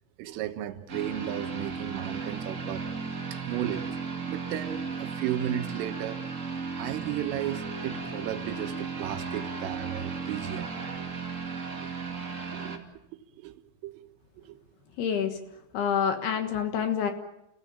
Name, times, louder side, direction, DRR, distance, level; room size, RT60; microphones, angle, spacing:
voice 1, 0.2-2.9 3.3-3.9 4.3-6.2 6.8-10.7 12.5-12.8 13.4-13.6 13.8-14.0 14.5-14.6, right 12 dB, 80° right, 3.8 m, -34 dB
sound 1, 0.9-12.8, right 5 dB, 60° right, 0.8 m, -35 dB
voice 2, 15.0-15.4 15.7-17.1, left 7 dB, 65° left, 3.0 m, -27 dB
29.5 x 16.5 x 8.7 m
omnidirectional pair, 5.8 m